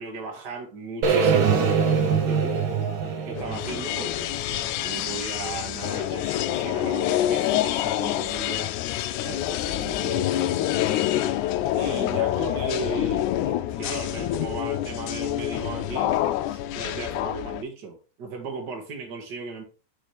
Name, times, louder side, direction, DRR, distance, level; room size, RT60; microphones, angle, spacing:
voice 1, 0.0-2.6 3.3-8.7 9.2-11.1 11.7-19.6, right 4 dB, 40° right, 2 dB, 2.0 m, -36 dB
sound 1, 1.0-5.1, right 6 dB, 80° right, 1.1 m, -23 dB
sound 2, 3.4-17.6, left 13 dB, 80° left, 1.9 m, -27 dB
8.1 x 5.1 x 3.4 m, 0.34 s
omnidirectional pair, 3.6 m